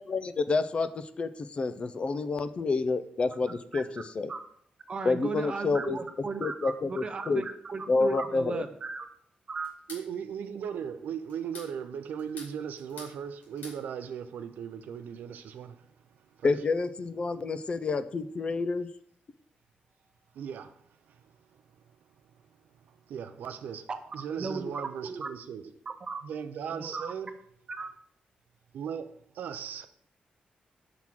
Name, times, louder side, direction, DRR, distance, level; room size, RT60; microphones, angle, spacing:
voice 1, 0.0-4.3 5.0-6.0 6.4-7.4 7.9-8.6 16.4-18.9, left 3 dB, 40° left, 0.5 m, -29 dB
voice 2, 4.9-9.0 9.5-9.7 23.9-24.0 24.4-24.7 25.0-25.3 26.1-26.2 26.6-27.1 27.7-27.9, right 4 dB, 35° right, 0.7 m, -36 dB
sound 1, 9.6-10.1 11.3-11.7 12.2-13.2 13.4-13.8, left 2 dB, 85° left, 3.1 m, -46 dB
voice 3, 9.9-16.5 20.3-25.7 26.2-27.4 28.7-29.9, right 8 dB, 85° right, 0.5 m, -38 dB
5.9 x 3.7 x 6.0 m
wide cardioid pair, 125°, 3 cm